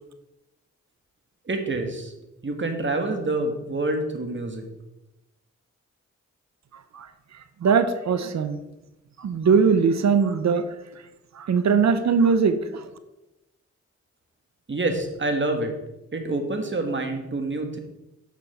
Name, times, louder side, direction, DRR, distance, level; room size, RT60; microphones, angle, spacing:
voice 1, 1.5-2.1 2.4-4.6 14.7-15.7 16.1-17.8, right 2 dB, 40° right, 5 dB, 1.8 m, -27 dB
voice 2, 7.6-8.6 9.2-10.7 11.3-12.8, right 5 dB, 65° right, 11 dB, 0.9 m, -20 dB
9.3 x 6.1 x 4.5 m, 0.96 s
cardioid pair, 55°, 30 cm